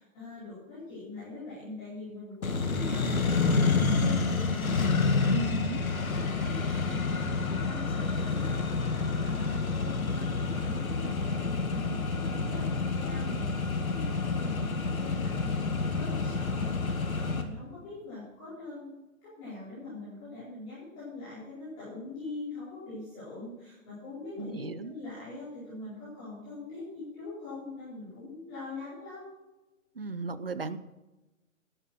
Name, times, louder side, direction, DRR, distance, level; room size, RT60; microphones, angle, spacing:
voice 1, 0.0-5.5 5.9-29.3, left 3 dB, 10° left, -14 dB, 4.6 m, -43 dB
Accelerating revving vroom, 2.4-17.4, left 4 dB, 80° left, 2.3 m, -29 dB
voice 2, 5.3-5.8 24.4-24.9 30.0-30.8, right 4 dB, 45° right, 14 dB, 0.8 m, -35 dB
12.5 x 11.5 x 6.2 m, 1.0 s
hypercardioid pair, 175°, 42 cm